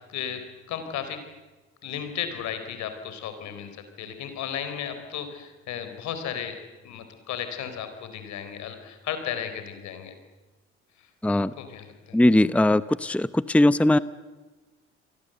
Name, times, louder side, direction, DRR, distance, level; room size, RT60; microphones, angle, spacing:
voice 1, 0.1-0.4 0.7-1.2 1.8-6.6 6.8-10.1 11.0-11.1 11.6-12.2, left 9 dB, 70° left, 8 dB, 4.4 m, -34 dB
voice 2, 11.2-11.5 12.1-14.0, left 1 dB, 5° left, 16 dB, 0.8 m, -20 dB
29.0 x 23.0 x 8.0 m, 1.2 s
hypercardioid pair, 55°, 29 cm